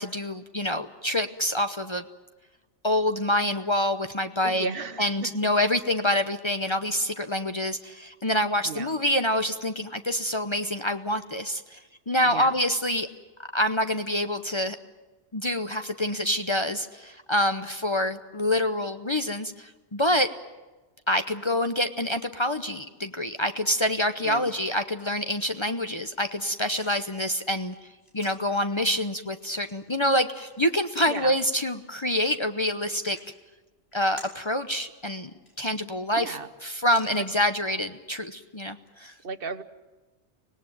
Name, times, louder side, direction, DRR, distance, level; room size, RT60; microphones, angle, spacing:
voice 1, 0.0-2.0 2.8-4.7 5.0-11.8 12.1-13.1 13.5-14.8 15.3-20.3 21.1-27.7 28.1-33.2 33.9-35.3 35.6-39.1, left 1 dB, 30° left, 8 dB, 0.8 m, -26 dB
voice 2, 4.4-5.5 8.6-8.9 12.2-12.5 24.2-24.5 31.0-31.3 36.1-36.5 37.2-37.3 39.2-39.6, right 5 dB, 55° right, 10 dB, 1.3 m, -35 dB
sound 1, 26.7-37.9, equal, 60° left, 6.1 m, -54 dB
25.0 x 18.5 x 9.2 m, 1.2 s
omnidirectional pair, 1.2 m